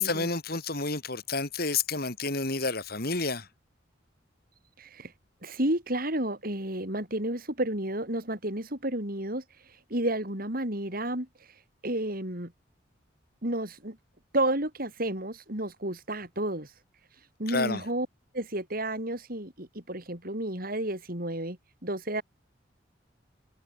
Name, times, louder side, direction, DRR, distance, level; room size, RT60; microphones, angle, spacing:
voice 1, 0.0-3.5 17.5-17.8, left 4 dB, 55° left, 5.3 m, -29 dB
voice 2, 4.8-5.1 5.4-12.5 13.4-14.0 14.3-16.7 17.4-18.1 18.3-21.6 21.8-22.2, right 1 dB, 50° right, 7.6 m, -31 dB
head